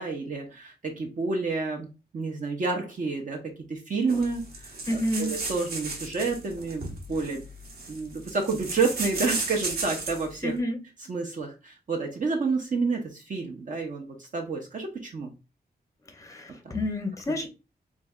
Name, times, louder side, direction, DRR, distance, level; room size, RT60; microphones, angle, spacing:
voice 1, 0.0-1.9 2.1-3.4 3.7-7.4 7.9-10.5 11.1-15.3, right 4 dB, 50° right, 1 dB, 0.7 m, -29 dB
sound 1, 4.1-10.3, right 3 dB, 70° right, 1.1 m, -35 dB
voice 2, 4.9-5.3 10.4-10.8 16.2-17.5, left 1 dB, 20° left, 6 dB, 0.5 m, -29 dB
3.6 x 3.1 x 2.3 m, 0.28 s
wide cardioid pair, 175°, 17 cm